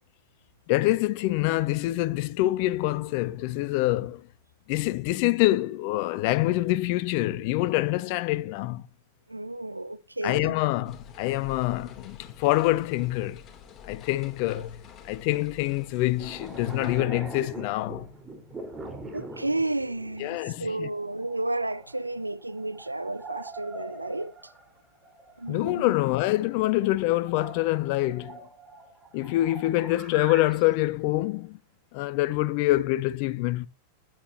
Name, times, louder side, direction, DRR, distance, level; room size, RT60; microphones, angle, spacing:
voice 1, 0.7-4.2 4.7-8.8 10.2-13.4 13.9-18.1 20.2-20.9 25.5-28.4 29.1-31.6 31.9-33.7, left 17 dB, 45° left, 0.7 m, -26 dB
voice 2, 9.3-10.6 19.1-24.5 25.4-25.9, right 2 dB, 85° right, 0.7 m, -32 dB
sound 1, 10.8-17.0, left 7 dB, 30° left, 3.2 m, -48 dB
sound 2, 16.2-30.7 32.6-32.7, right 2 dB, 15° right, 4.5 m, -43 dB
21.0 x 9.1 x 2.9 m
figure-of-eight pair, 90°, 0 cm